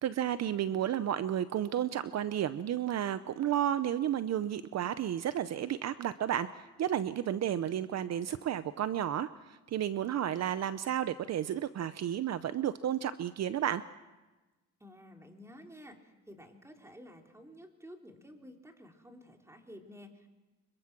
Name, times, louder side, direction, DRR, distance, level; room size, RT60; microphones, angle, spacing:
voice 1, 0.0-13.8, right 10 dB, 60° right, 13 dB, 0.8 m, -32 dB
voice 2, 14.8-20.3, equal, 10° right, 3 dB, 3.5 m, -52 dB
25.5 x 22.5 x 6.1 m, 1.1 s
cardioid pair, 90°, 30 cm